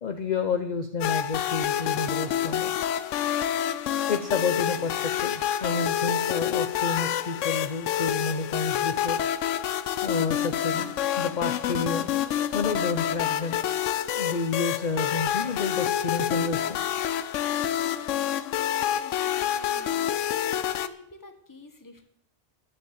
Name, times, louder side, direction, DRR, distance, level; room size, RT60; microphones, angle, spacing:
voice 1, 0.0-2.7 4.1-9.2 10.0-12.1 12.5-13.7 14.1-16.8, left 4 dB, 40° left, 7 dB, 0.8 m, -30 dB
sound 1, 1.0-20.9, left 10 dB, 85° left, 1.0 m, -28 dB
voice 2, 18.2-20.2 20.6-22.0, left 2 dB, 15° left, 6 dB, 1.1 m, -50 dB
11.0 x 7.3 x 7.8 m, 0.74 s
omnidirectional pair, 1.2 m